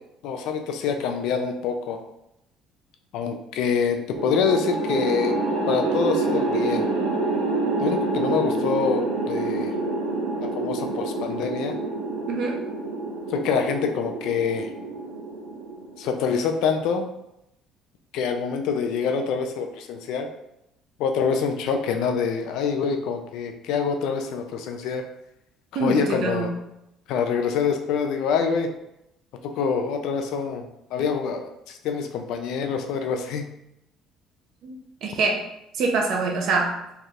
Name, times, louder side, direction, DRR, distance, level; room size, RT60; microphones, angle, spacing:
voice 1, 0.2-2.0 3.1-5.4 5.7-6.9 7.8-9.7 10.4-11.8 13.3-14.7 16.0-17.1 18.1-20.3 21.0-25.0 25.8-26.5 27.1-28.7 29.4-33.5, left 6 dB, 70° left, 5 dB, 0.5 m, -26 dB
sound 1, 4.2-16.5, right 2 dB, 85° right, 0.9 m, -27 dB
voice 2, 12.3-12.6 25.7-26.5 34.6-35.5 35.8-36.8, right 3 dB, 55° right, 0 dB, 0.7 m, -25 dB
4.3 x 3.3 x 2.5 m, 0.84 s
cardioid pair, 150°, 0 cm